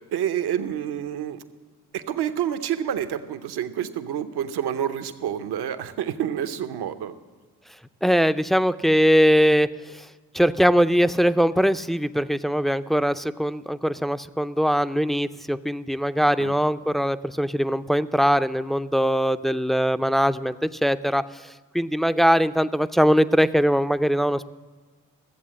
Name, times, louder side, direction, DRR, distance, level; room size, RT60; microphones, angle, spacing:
voice 1, 0.1-1.4 1.9-7.2 16.4-16.5, right 9 dB, 75° right, 10 dB, 0.8 m, -28 dB
voice 2, 8.0-10.1 10.3-24.5, equal, ahead, 12 dB, 0.4 m, -21 dB
14.0 x 7.9 x 7.5 m, 1.4 s
supercardioid pair, 50°, 40 cm